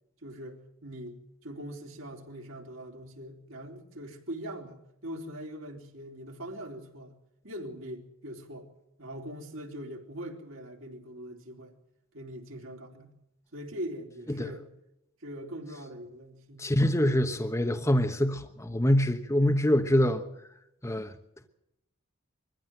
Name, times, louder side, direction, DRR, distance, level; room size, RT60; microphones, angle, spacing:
voice 1, 0.2-7.1 7.4-8.7 9.0-11.8 12.1-13.1 13.5-14.7 15.2-16.7, equal, 85° right, 3.8 m, -42 dB
voice 2, 16.6-20.2 20.8-21.1, left 1 dB, 15° left, 1.1 m, -25 dB
22.5 x 15.0 x 7.8 m
head